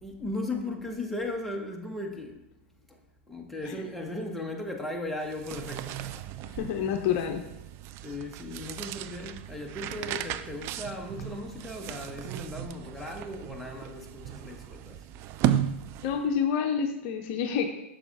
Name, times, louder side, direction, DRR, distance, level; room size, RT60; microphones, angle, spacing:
voice 1, 0.0-2.4 2.9-3.0 3.3-6.1 8.0-15.1, left 2 dB, ahead, 0 dB, 1.1 m, -37 dB
sound 1, 5.2-16.4, right 11 dB, 40° right, 0.4 m, -35 dB
voice 2, 6.4-7.5 16.0-17.7, left 7 dB, 50° left, 5 dB, 0.7 m, -28 dB
6.4 x 6.1 x 3.6 m, 0.88 s
hypercardioid pair, 100°, 7 cm